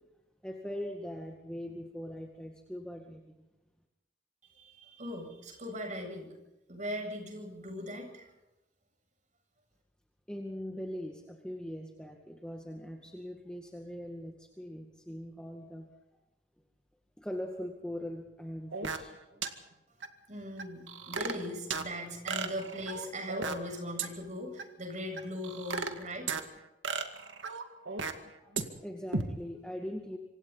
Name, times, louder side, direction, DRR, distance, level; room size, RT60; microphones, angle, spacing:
voice 1, 0.4-3.2 10.3-15.9 17.2-19.4 28.4-28.5 28.8-30.2, equal, 5° left, 1 dB, 2.0 m, -41 dB
voice 2, 4.4-6.4 6.7-8.3 20.3-26.3, equal, 40° right, 3 dB, 7.7 m, -39 dB
sound 1, 18.7-19.1 19.4-19.5 20.0-20.1 20.6-21.9 22.3-23.7 24.0-24.1 24.6-24.7 25.2-26.4 26.8-28.3 28.6-28.7 29.1-29.2, right 4 dB, 90° right, 2.2 m, -35 dB
27.0 x 26.0 x 4.2 m, 0.98 s
head